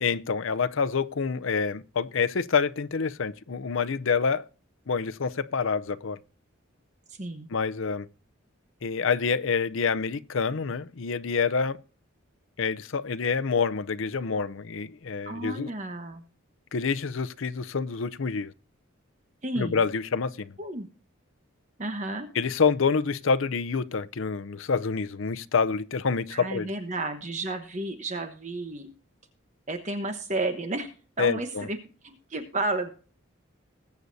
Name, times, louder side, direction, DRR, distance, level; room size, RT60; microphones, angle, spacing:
voice 1, 0.0-4.5 4.9-6.2 7.5-8.1 8.8-11.8 12.6-15.7 16.7-18.5 19.6-20.5 22.3-26.7 31.2-31.7, left 5 dB, 70° left, 0.6 m, -27 dB
voice 2, 7.1-7.5 15.2-16.2 19.4-19.8 20.6-20.9 21.8-22.3 26.3-28.9 29.7-30.9 31.2-31.8 32.0-32.9, right 2 dB, 35° right, 1.1 m, -32 dB
20.5 x 8.2 x 2.7 m
head